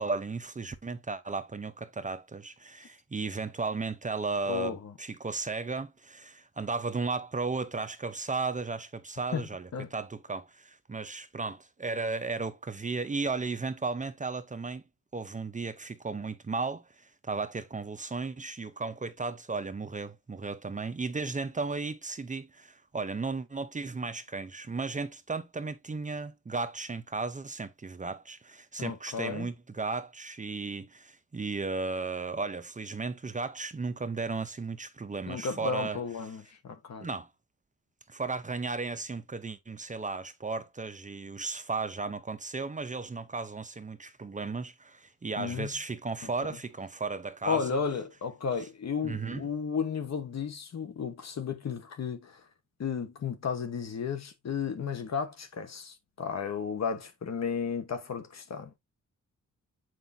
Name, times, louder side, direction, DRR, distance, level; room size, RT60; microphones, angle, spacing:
voice 1, 0.0-14.8 15.1-36.0 37.0-37.3 38.1-47.8 49.0-49.4, right 4 dB, 25° right, 0.7 m, -35 dB
voice 2, 4.5-4.9 9.3-9.9 28.8-29.5 35.3-37.1 45.4-45.7 46.2-46.3 47.5-52.4 52.8-58.8, left 6 dB, 60° left, 1.3 m, -34 dB
7.7 x 5.0 x 2.7 m
cardioid pair, 105°, 31 cm